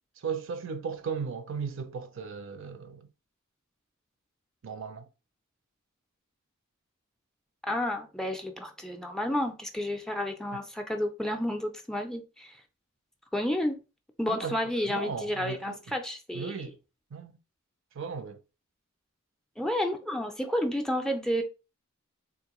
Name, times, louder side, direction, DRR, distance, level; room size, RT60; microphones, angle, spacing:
voice 1, 0.2-3.1 4.6-5.1 10.5-10.6 14.3-15.9 16.3-16.8 17.1-17.4 17.9-18.4, right 6 dB, 60° right, 0.5 m, -36 dB
voice 2, 7.6-12.6 13.3-13.8 14.2-16.5 19.6-21.4, left 1 dB, ahead, 0.4 m, -31 dB
3.7 x 2.6 x 2.9 m
head